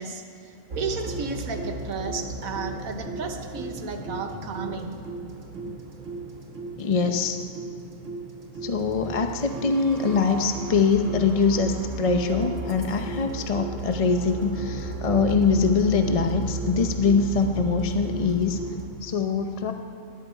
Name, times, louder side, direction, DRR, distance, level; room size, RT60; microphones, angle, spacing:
voice 1, 0.0-5.0, right 4 dB, 80° right, 6 dB, 1.5 m, -33 dB
sound 1, 0.7-18.9, right 2 dB, 60° right, 1.8 m, -34 dB
voice 2, 6.8-7.4 8.6-18.6 19.0-19.7, left 5 dB, 40° left, 6 dB, 0.5 m, -23 dB
18.0 x 12.5 x 4.5 m, 2.6 s
omnidirectional pair, 1.4 m